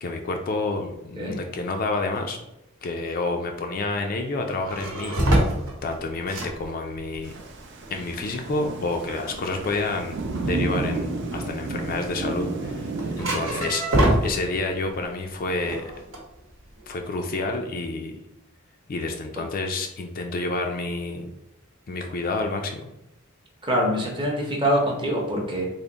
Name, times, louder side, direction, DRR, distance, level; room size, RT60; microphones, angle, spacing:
voice 1, 0.0-2.4 2.8-5.2 5.8-7.3 7.9-12.9 13.2-13.9 14.2-15.9 16.9-18.2 18.9-21.3 21.9-22.9, left 3 dB, 40° left, 4 dB, 0.3 m, -29 dB
sound 1, 4.5-15.0 15.3-17.0, right 1 dB, 70° right, 0.9 m, -27 dB
Thunder / Rain, 7.2-13.7, right 2 dB, 55° right, 0.5 m, -31 dB
voice 2, 23.6-25.6, equal, 25° right, -1 dB, 0.7 m, -24 dB
3.4 x 2.1 x 3.8 m, 0.88 s
head